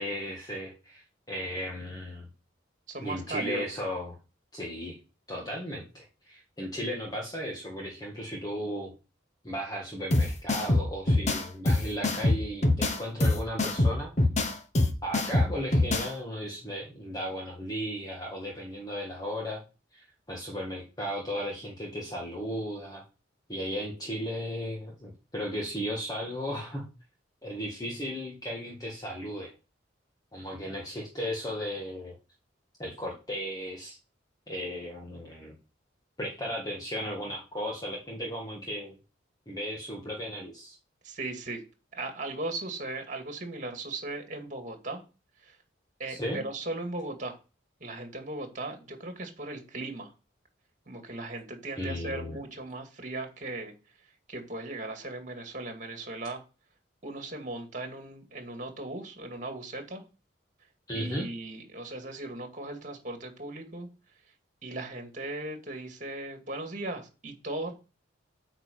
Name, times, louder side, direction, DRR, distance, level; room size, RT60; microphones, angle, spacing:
voice 1, 0.0-2.3 3.0-4.2 4.5-5.0 5.3-8.9 9.4-14.1 15.0-19.6 19.9-23.0 23.5-26.9 27.4-29.5 30.3-32.2 32.8-34.0 34.5-35.6 36.2-38.9 39.5-40.8 46.1-46.4 51.8-52.4 60.9-61.3, equal, 20° left, -2 dB, 1.9 m, -35 dB
voice 2, 2.9-3.8 41.0-41.6 41.9-45.0 45.5-45.6 46.0-47.4 47.8-50.1 50.9-53.7 54.3-56.4 57.0-60.0 60.9-63.9 64.6-67.7, right 2 dB, 40° right, 4 dB, 2.3 m, -37 dB
sound 1, 10.1-16.1, left 2 dB, 35° left, 1.2 m, -25 dB
8.9 x 5.0 x 7.0 m, 0.32 s
head